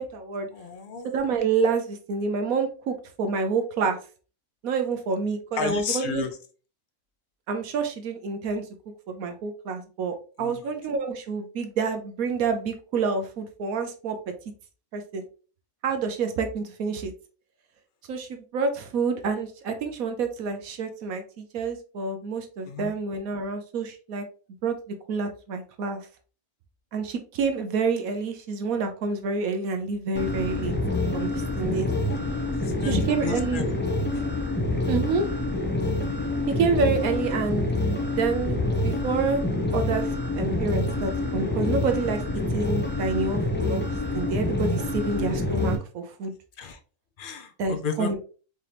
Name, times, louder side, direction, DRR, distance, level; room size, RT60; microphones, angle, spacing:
voice 1, 0.0-0.5 1.0-4.0 4.6-6.2 7.5-8.6 9.1-14.2 14.9-15.2 15.8-17.1 18.1-24.2 24.6-24.7 25.1-26.1 26.9-30.7 31.1-31.9 32.8-33.6 34.9-35.3 36.5-37.7 38.1-39.4 39.7-42.2 42.5-43.9 44.1-46.3 47.6-48.2, right 4 dB, 70° right, 6 dB, 1.1 m, -28 dB
voice 2, 0.5-1.1 5.6-6.3 10.4-10.6 22.7-22.9 31.9-32.2 32.6-33.7 34.1-34.2 46.6-46.8 47.2-48.2, left 6 dB, 70° left, 6 dB, 0.5 m, -32 dB
sound 1, 30.1-45.8, left 2 dB, 10° left, 0.5 m, -27 dB
4.9 x 2.9 x 3.2 m, 0.37 s
omnidirectional pair, 1.6 m